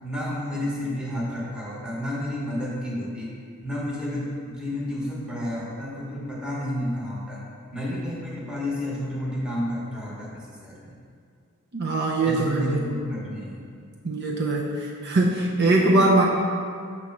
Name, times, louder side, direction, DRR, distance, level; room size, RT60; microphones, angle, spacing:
voice 1, 0.0-3.3 3.6-4.3 4.6-7.4 7.7-10.3 10.6-10.8 12.2-13.5, left 1 dB, 5° right, -6 dB, 1.0 m, -30 dB
voice 2, 11.7-13.0 14.0-16.2, right 2 dB, 50° right, -2 dB, 0.5 m, -22 dB
6.3 x 3.1 x 5.7 m, 2.2 s
head